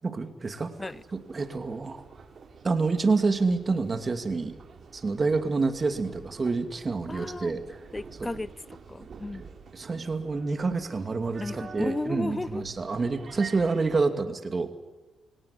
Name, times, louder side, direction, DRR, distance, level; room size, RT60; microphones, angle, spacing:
voice 1, 0.0-2.0 2.6-4.5 4.9-7.8 8.2-8.3 9.7-14.7, right 4 dB, 30° right, 2.6 m, -28 dB
sound 1, 0.8-14.0, right 5 dB, 45° right, 3.5 m, -48 dB
voice 2, 7.1-7.6 7.9-9.4 11.4-12.6, left 2 dB, 15° left, 0.7 m, -34 dB
25.5 x 17.5 x 9.9 m
cardioid pair, 90°, 0 cm